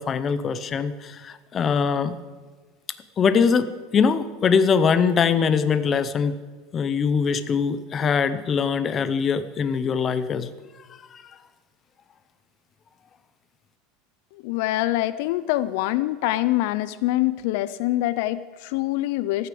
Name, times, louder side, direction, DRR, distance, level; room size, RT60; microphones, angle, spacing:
voice 1, 0.0-2.2 3.2-6.3 6.7-10.5 11.1-11.2, left 6 dB, 25° left, 13 dB, 0.7 m, -22 dB
voice 2, 14.4-19.5, left 16 dB, 65° left, 15 dB, 0.5 m, -24 dB
13.0 x 9.4 x 7.7 m, 1.4 s
supercardioid pair, 155°, 0 cm